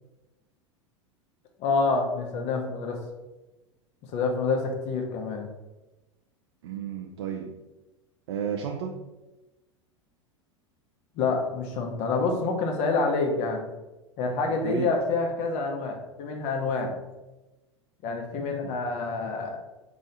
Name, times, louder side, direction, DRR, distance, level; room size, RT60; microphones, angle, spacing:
voice 1, 1.6-3.0 4.1-5.5 11.1-13.6 14.2-17.0 18.0-19.6, left 3 dB, 45° left, 2 dB, 1.0 m, -27 dB
voice 2, 6.6-7.5 8.3-9.0 14.4-14.9 18.6-18.8, right 7 dB, 60° right, 3 dB, 0.4 m, -33 dB
4.3 x 3.0 x 3.9 m, 1.1 s
figure-of-eight pair, 85°, 16 cm